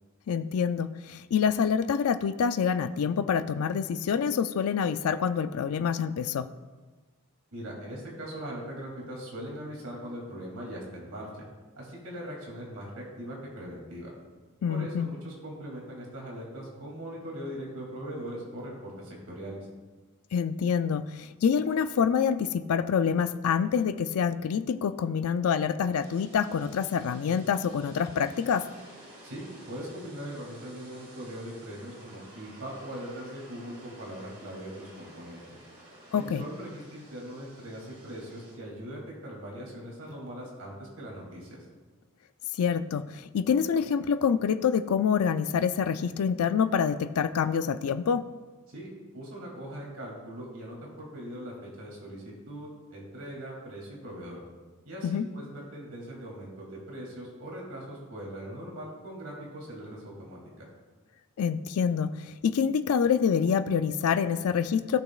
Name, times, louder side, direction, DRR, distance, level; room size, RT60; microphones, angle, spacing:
voice 1, 0.3-6.5 14.6-15.1 20.3-28.7 36.1-36.4 42.6-48.3 55.0-55.3 61.4-65.0, left 7 dB, 75° left, 11 dB, 0.4 m, -26 dB
voice 2, 7.5-11.3 11.8-14.1 14.7-19.7 29.2-35.4 36.1-41.6 48.7-54.4 54.8-60.7, equal, 75° right, -3 dB, 2.7 m, -40 dB
sound 1, 26.0-38.6, right 1 dB, 45° right, 2.4 m, -52 dB
16.0 x 6.0 x 2.4 m, 1.3 s
head